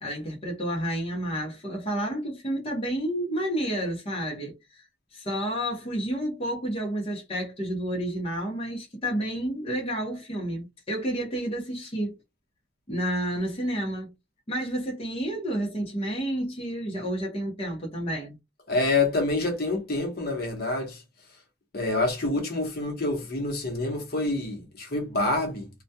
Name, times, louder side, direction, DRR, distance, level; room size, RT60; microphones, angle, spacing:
voice 1, 0.0-4.8 5.1-12.2 12.9-14.1 14.5-18.4, right 1 dB, 30° left, 0.8 m, -30 dB
voice 2, 18.7-21.0 21.7-25.7, left 2 dB, 55° left, 0.9 m, -27 dB
2.2 x 2.2 x 2.7 m
head